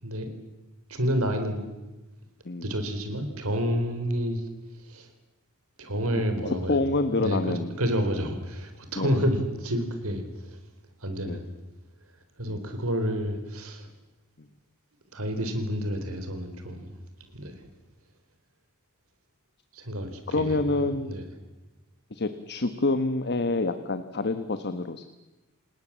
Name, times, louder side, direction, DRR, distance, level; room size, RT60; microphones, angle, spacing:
voice 1, 0.9-1.6 2.6-4.4 4.8-5.1 5.8-6.8 7.1-7.4 7.8-10.6 11.0-11.5 12.4-13.9 15.1-17.0 17.3-17.6 19.7-21.3, equal, 70° right, 7 dB, 4.1 m, -29 dB
voice 2, 6.4-7.8 9.0-9.2 11.3-11.4 12.5-12.6 20.3-21.1 22.1-25.0, left 2 dB, 50° left, 10 dB, 1.2 m, -27 dB
28.0 x 19.0 x 7.5 m, 1.1 s
head